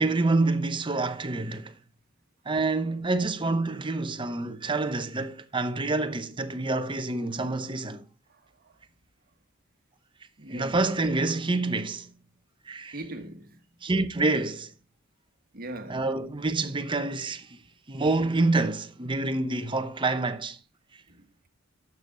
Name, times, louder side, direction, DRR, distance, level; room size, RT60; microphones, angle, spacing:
voice 1, 0.0-1.7 2.4-8.1 10.5-12.1 12.7-13.0 13.8-14.7 15.9-17.6 17.9-20.6, right 2 dB, 25° right, 0.8 m, -27 dB
voice 2, 8.3-8.7 10.4-10.8 12.9-13.6 15.5-16.1 21.1-21.3, right 1 dB, 45° right, 1.4 m, -41 dB
11.5 x 7.1 x 3.8 m
head